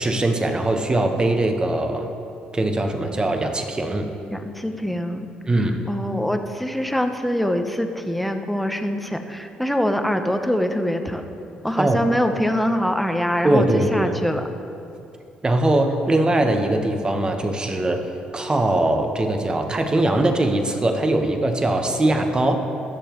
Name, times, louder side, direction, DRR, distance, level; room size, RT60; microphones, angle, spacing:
voice 1, 0.0-2.1 2.5-4.1 5.5-5.8 11.8-12.0 13.4-14.2 15.4-18.1 18.3-22.6, right 1 dB, 25° right, 5 dB, 1.3 m, -21 dB
voice 2, 4.3-5.3 5.9-11.3 11.6-14.5, equal, ahead, 6 dB, 0.9 m, -24 dB
19.5 x 6.8 x 3.2 m, 2.6 s
supercardioid pair, 60°, 3 cm